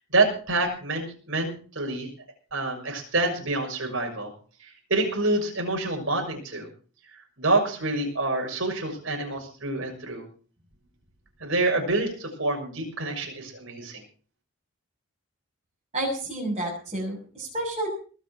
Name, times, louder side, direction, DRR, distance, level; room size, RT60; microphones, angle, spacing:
voice 1, 0.1-2.1 2.5-4.3 4.6-6.7 7.1-10.2 11.4-14.0, right 2 dB, 60° right, 1 dB, 6.6 m, -27 dB
voice 2, 15.9-17.9, right 1 dB, 30° right, -5 dB, 7.0 m, -30 dB
20.0 x 7.5 x 7.5 m, 0.41 s
head